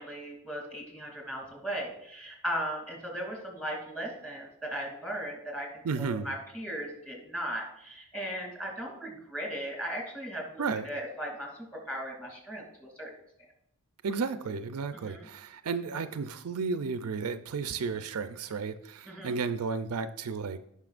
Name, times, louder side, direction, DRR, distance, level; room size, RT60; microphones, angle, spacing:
voice 1, 0.0-5.7 6.0-13.1 14.9-15.2 19.1-19.3, equal, 5° left, -1 dB, 2.6 m, -37 dB
voice 2, 5.8-6.3 10.6-10.9 14.0-20.6, right 5 dB, 80° right, 11 dB, 0.5 m, -33 dB
16.5 x 5.6 x 2.5 m, 0.74 s
head